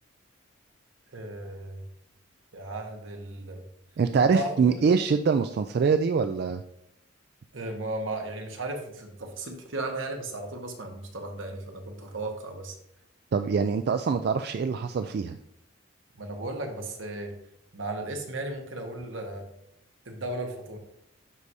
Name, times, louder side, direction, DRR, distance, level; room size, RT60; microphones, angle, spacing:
voice 1, 1.1-1.9 2.5-3.6 4.1-4.7 7.5-12.8 16.2-17.3 17.7-19.5 20.0-20.8, right 2 dB, 80° right, 3 dB, 1.3 m, -35 dB
voice 2, 4.0-6.6 13.3-15.4, right 5 dB, 55° right, 8 dB, 0.3 m, -24 dB
12.0 x 4.8 x 2.7 m, 0.77 s
head